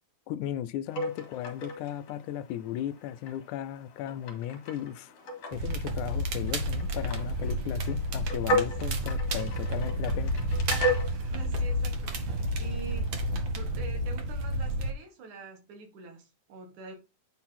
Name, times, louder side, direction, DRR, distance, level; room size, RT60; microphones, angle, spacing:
voice 1, 0.3-5.1 5.5-10.4, left 11 dB, 85° left, 2.0 m, -36 dB
sound 1, 0.9-13.2, equal, 60° left, 2.9 m, -36 dB
Crackle, 5.5-14.9, equal, 55° right, 1.4 m, -30 dB
voice 2, 11.1-13.2 13.5-17.0, right 3 dB, 80° right, 3.1 m, -46 dB
9.2 x 3.9 x 4.2 m
omnidirectional pair, 3.4 m